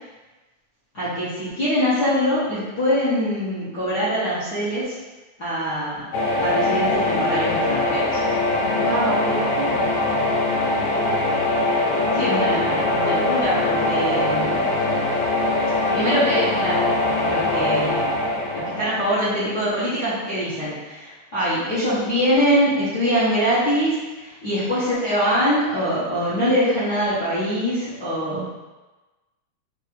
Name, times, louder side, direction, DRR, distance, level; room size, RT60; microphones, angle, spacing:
voice 1, 0.9-5.0 5.4-6.1 6.4-8.2 12.1-14.7 15.9-16.8 17.2-18.2 18.5-28.5, equal, 55° left, -14 dB, 1.1 m, -23 dB
sound 1, 6.1-20.0, left 2 dB, 90° left, 2.1 m, -22 dB
voice 2, 8.7-9.9 28.3-28.5, right 5 dB, 80° right, 0 dB, 1.8 m, -28 dB
4.7 x 2.8 x 3.1 m, 1.2 s
omnidirectional pair, 3.4 m